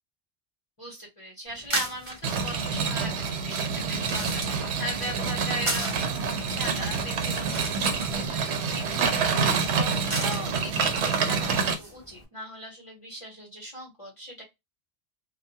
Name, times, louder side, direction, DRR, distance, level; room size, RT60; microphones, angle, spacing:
voice 1, 0.8-14.4, equal, 30° left, -4 dB, 0.9 m, -39 dB
sound 1, 1.5-12.2, right 2 dB, 30° right, 0.8 m, -38 dB
sound 2, 2.2-11.7, right 5 dB, 80° right, 0.9 m, -27 dB
2.2 x 2.2 x 2.7 m, 0.21 s
omnidirectional pair, 1.1 m